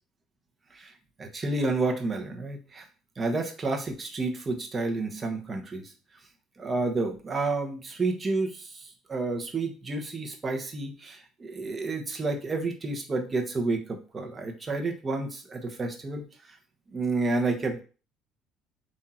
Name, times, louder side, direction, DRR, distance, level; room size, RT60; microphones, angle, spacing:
voice 1, 1.2-2.8 3.2-5.9 6.6-16.6 16.9-17.8, right 3 dB, 25° right, 2 dB, 1.0 m, -30 dB
3.7 x 2.7 x 4.3 m, 0.36 s
cardioid pair, 110°, 0 cm